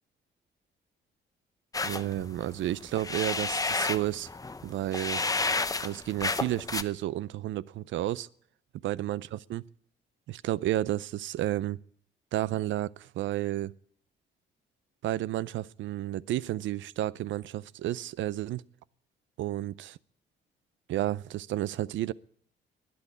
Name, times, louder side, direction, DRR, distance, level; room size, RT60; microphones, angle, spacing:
sound 1, 1.7-6.8, left 3 dB, 15° left, 0.7 m, -31 dB
voice 1, 1.8-4.3 4.6-5.2 5.8-8.3 8.8-9.6 10.3-11.8 12.3-13.7 15.0-18.6 19.4-20.0 20.9-22.1, right 14 dB, 75° right, 0.5 m, -31 dB
12.0 x 9.3 x 9.7 m
cardioid pair, 90°, 20 cm